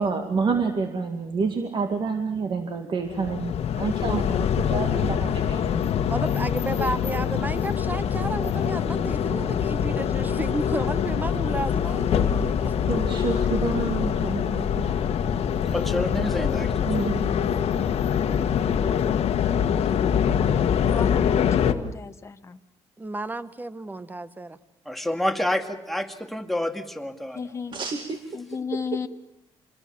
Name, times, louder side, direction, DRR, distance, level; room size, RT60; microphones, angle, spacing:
voice 1, 0.0-6.0 12.8-15.0 16.9-17.5 27.7-28.4, right 4 dB, 45° right, 2.2 m, -28 dB
sound 1, 3.1-21.7, left 8 dB, 65° left, 1.5 m, -24 dB
voice 2, 6.1-12.7 23.0-24.6, right 2 dB, 15° right, 1.2 m, -32 dB
voice 3, 15.6-17.1 24.9-27.4, left 1 dB, ahead, 2.1 m, -28 dB
voice 4, 17.7-19.0 19.4-19.9 20.3-21.0, right 3 dB, 60° right, 4.1 m, -49 dB
voice 5, 20.9-22.6 27.3-27.8 28.3-29.1, left 5 dB, 25° left, 1.2 m, -33 dB
26.5 x 21.0 x 7.3 m
cardioid pair, 100°, 11 cm